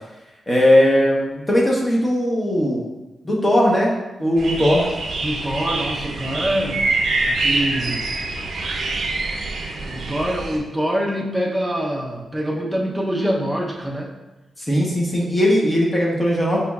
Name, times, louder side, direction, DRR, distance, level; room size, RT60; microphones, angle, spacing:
voice 1, 0.5-2.8 3.2-3.9 4.2-4.9 14.7-16.6, equal, 20° left, -3 dB, 0.9 m, -18 dB
sound 1, 4.4-10.6, right 2 dB, 65° right, 0.6 m, -25 dB
voice 2, 5.2-6.8 7.2-8.0 9.8-14.1, right 1 dB, 5° right, -1 dB, 0.7 m, -25 dB
5.0 x 3.0 x 2.3 m, 1.1 s
cardioid pair, 95°, 0 cm